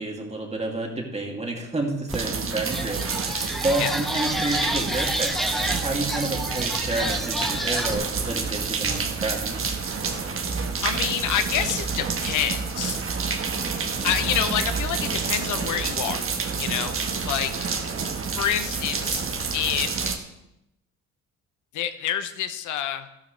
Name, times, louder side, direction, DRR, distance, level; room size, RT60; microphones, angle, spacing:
voice 1, 0.0-9.8 13.9-14.1, right 2 dB, 20° right, 1 dB, 2.6 m, -30 dB
sound 1, 2.1-2.2 2.6-7.9, equal, ahead, 0.9 m, -30 dB
sound 2, 2.1-20.2, right 5 dB, 45° right, 1.5 m, -28 dB
voice 2, 10.8-13.0 14.0-16.2 16.6-17.0 17.2-17.5 18.4-19.2 19.5-20.0 21.7-23.1, left 10 dB, 80° left, 10 dB, 0.9 m, -27 dB
12.5 x 12.5 x 3.3 m, 0.85 s
cardioid pair, 90°, 30 cm